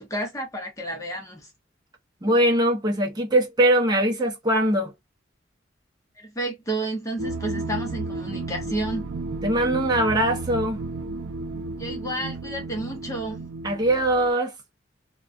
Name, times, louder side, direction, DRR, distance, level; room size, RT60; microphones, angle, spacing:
voice 1, 0.0-1.5 6.2-9.1 11.8-13.4, right 1 dB, 15° left, 0.7 m, -31 dB
voice 2, 2.2-4.9 9.4-10.8 13.6-14.5, right 1 dB, 20° right, 0.7 m, -21 dB
sound 1, 7.2-14.3, right 3 dB, 70° right, 0.4 m, -33 dB
2.3 x 2.3 x 2.4 m
head